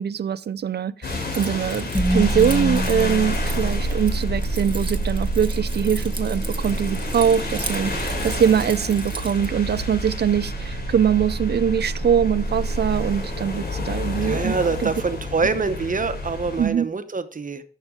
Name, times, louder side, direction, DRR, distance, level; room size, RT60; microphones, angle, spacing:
voice 1, 0.0-14.6 14.8-14.9 16.6-16.9, right 8 dB, 80° right, 0.5 m, -22 dB
sound 1, 1.0-16.7, left 3 dB, 80° left, 3.8 m, -31 dB
Keys jangling, 1.3-9.5, right 3 dB, 30° right, 1.4 m, -38 dB
sound 2, 1.9-14.0, right 2 dB, ahead, 5.2 m, -28 dB
voice 2, 14.2-17.6, right 4 dB, 55° right, 0.9 m, -25 dB
11.5 x 7.2 x 3.6 m
wide cardioid pair, 65°, 17 cm